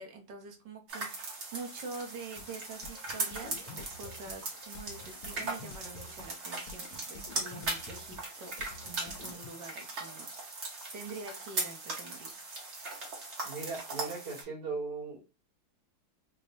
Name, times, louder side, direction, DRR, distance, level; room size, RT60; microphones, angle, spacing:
voice 1, 0.0-10.3 10.9-12.4 12.7-12.8, right 4 dB, 65° right, 3 dB, 1.4 m, -46 dB
sound 1, 0.9-14.4, right 3 dB, 45° right, 1.0 m, -39 dB
sound 2, 2.4-9.5, left 4 dB, 85° left, 1.4 m, -49 dB
voice 2, 13.4-15.2, right 4 dB, 90° right, -5 dB, 2.5 m, -38 dB
4.7 x 2.1 x 2.6 m, 0.29 s
omnidirectional pair, 2.2 m